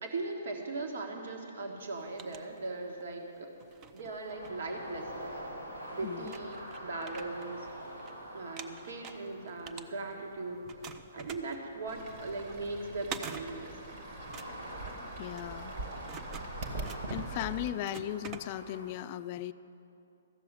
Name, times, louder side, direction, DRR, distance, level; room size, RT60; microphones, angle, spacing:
voice 1, 0.0-3.5 3.9-5.3 5.9-7.7 8.3-10.6 11.1-13.7, right 3 dB, 60° right, 1 dB, 1.6 m, -39 dB
sound 1, 1.8-3.1 3.6-5.3 5.8-5.9 6.2-8.1 8.4-10.3 10.7-18.9, right 6 dB, 25° right, 0.6 m, -47 dB
sound 2, 4.3-18.9, equal, 85° right, 3.2 m, -46 dB
Fowl / Bird, 11.9-17.7, right 3 dB, 45° right, 1.6 m, -43 dB
voice 2, 15.2-15.7 17.1-19.5, left 13 dB, 40° left, 13 dB, 0.4 m, -37 dB
14.0 x 6.9 x 9.2 m, 2.8 s
figure-of-eight pair, 125°, 0 cm